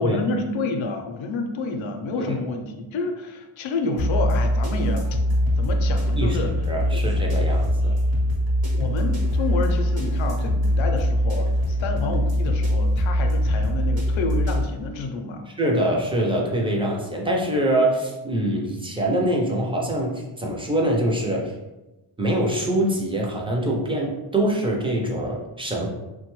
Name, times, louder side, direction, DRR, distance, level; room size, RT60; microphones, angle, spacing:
voice 1, 0.0-5.2 5.6-6.5 6.9-7.0 8.7-15.5, left 3 dB, 70° left, 5 dB, 0.5 m, -29 dB
sound 1, 4.0-14.6, equal, 45° right, 0.8 m, -22 dB
voice 2, 6.7-7.9 15.6-21.5 22.2-25.9, right 1 dB, 10° right, -2 dB, 0.3 m, -24 dB
3.2 x 2.2 x 3.0 m, 1.0 s
wide cardioid pair, 170°, 50 cm